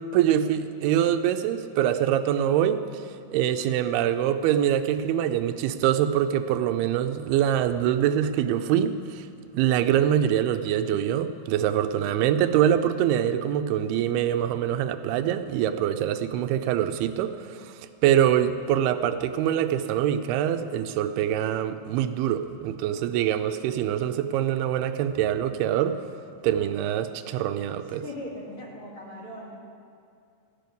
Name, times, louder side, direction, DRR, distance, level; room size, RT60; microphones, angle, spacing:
voice 1, 0.0-3.0 3.3-9.3 9.5-17.8 18.0-26.0 26.4-28.0, right 10 dB, 85° right, 9 dB, 2.6 m, -24 dB
voice 2, 27.8-29.6, left 1 dB, 40° left, -5 dB, 2.3 m, -40 dB
14.0 x 6.9 x 9.2 m, 2.5 s
omnidirectional pair, 4.4 m